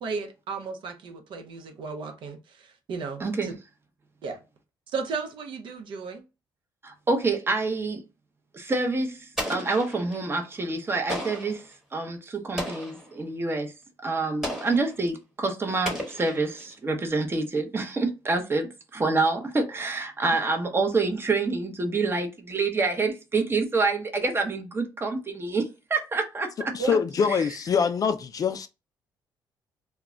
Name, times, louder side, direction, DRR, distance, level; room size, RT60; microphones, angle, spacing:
voice 1, 0.0-3.5 4.2-4.4 4.9-6.2 26.8-26.9, right 4 dB, 70° right, 0.6 m, -34 dB
voice 2, 3.2-3.5 6.8-8.0 8.5-13.7 14.0-26.7, right 3 dB, 25° right, 0.7 m, -27 dB
Explosion, 9.4-10.3 11.1-11.6 12.6-13.1 14.4-15.0 15.8-16.7, equal, 5° right, 1.0 m, -34 dB
voice 3, 26.7-28.7, left 6 dB, 45° left, 0.3 m, -24 dB
2.2 x 2.1 x 3.6 m
cardioid pair, 90°, 9 cm